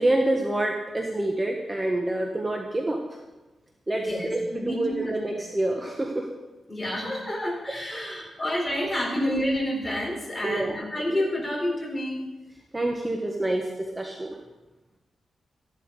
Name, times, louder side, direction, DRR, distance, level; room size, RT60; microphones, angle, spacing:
voice 1, 0.0-3.0 3.9-6.3 7.7-8.4 9.1-9.3 10.4-10.9 12.7-14.3, right 1 dB, 20° right, 1 dB, 1.4 m, -27 dB
voice 2, 4.0-5.1 6.7-12.2, left 1 dB, 15° left, -1 dB, 4.3 m, -29 dB
14.0 x 11.5 x 4.9 m, 1.1 s
wide cardioid pair, 105°, 0 cm